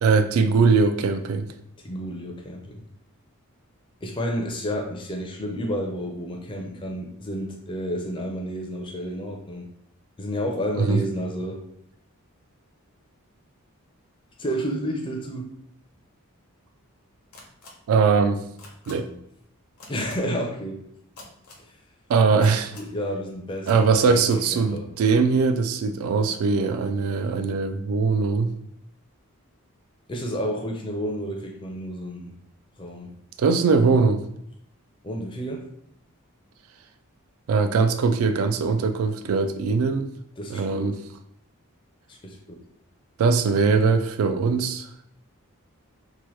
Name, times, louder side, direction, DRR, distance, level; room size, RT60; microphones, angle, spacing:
voice 1, 0.0-1.5 10.8-11.0 17.9-18.4 18.9-19.1 22.1-22.7 23.7-28.5 33.4-34.2 37.5-40.1 40.5-41.0 43.2-44.9, right 4 dB, 70° right, 9 dB, 0.3 m, -21 dB
voice 2, 1.8-2.8 4.0-9.7 10.2-11.6 14.4-15.5 19.9-20.8 22.7-24.9 30.1-32.3 32.8-33.1 35.0-35.6 40.4-41.0 42.1-42.6, equal, 20° left, 1 dB, 0.4 m, -31 dB
sound 1, 17.3-17.7 18.6-18.9 19.8-20.1 21.2-21.6 22.4-22.9 23.6-23.7 24.2-24.4, left 3 dB, 75° left, 0.7 m, -45 dB
2.9 x 2.1 x 3.1 m, 0.72 s
head